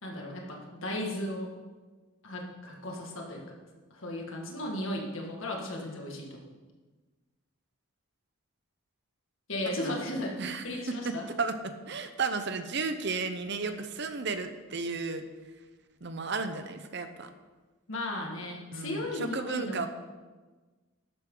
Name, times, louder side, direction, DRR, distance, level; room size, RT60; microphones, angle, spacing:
voice 1, 0.0-1.5 2.2-3.6 3.9-6.5 9.5-10.4 10.6-11.2 17.9-19.9, left 1 dB, 65° left, 0 dB, 2.0 m, -35 dB
voice 2, 9.6-10.0 10.4-15.2 16.0-17.3 18.7-19.9, right 4 dB, 50° right, 9 dB, 0.8 m, -34 dB
12.0 x 9.2 x 3.9 m, 1.3 s
head